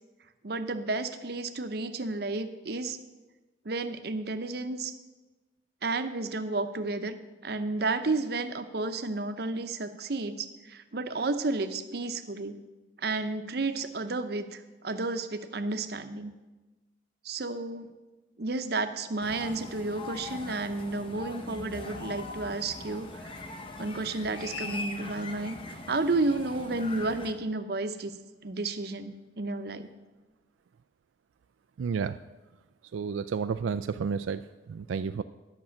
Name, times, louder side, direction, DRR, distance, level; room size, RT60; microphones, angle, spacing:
voice 1, 0.4-3.0 3.6-4.9 5.8-7.1 7.4-12.6 13.0-16.3 17.2-17.9 18.4-23.3 23.8-28.1 28.4-29.9, right 3 dB, 55° right, 9 dB, 0.8 m, -32 dB
sound 1, 19.2-27.3, left 2 dB, 30° left, 0.9 m, -41 dB
voice 2, 31.8-32.2 32.9-35.2, right 6 dB, 90° right, 11 dB, 0.3 m, -31 dB
11.0 x 6.1 x 8.5 m, 1.1 s
head